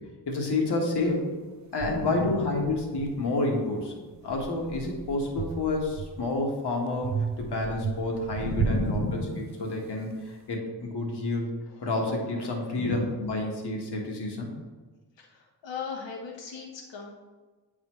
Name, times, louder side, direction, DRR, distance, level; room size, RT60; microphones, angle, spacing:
voice 1, 0.3-1.3 1.7-3.9 4.2-9.2 9.6-11.5 11.8-14.5, left 2 dB, 65° left, 0 dB, 1.4 m, -29 dB
sound 1, 1.0-1.1 1.8-3.6 4.1-6.4 7.0-9.8, right 6 dB, 45° right, 0.4 m, -34 dB
voice 2, 2.2-2.6 8.4-9.5 12.8-13.0 15.2-17.1, left 3 dB, 80° left, 0 dB, 1.0 m, -34 dB
8.5 x 4.1 x 3.1 m, 1.3 s
cardioid pair, 65°, 43 cm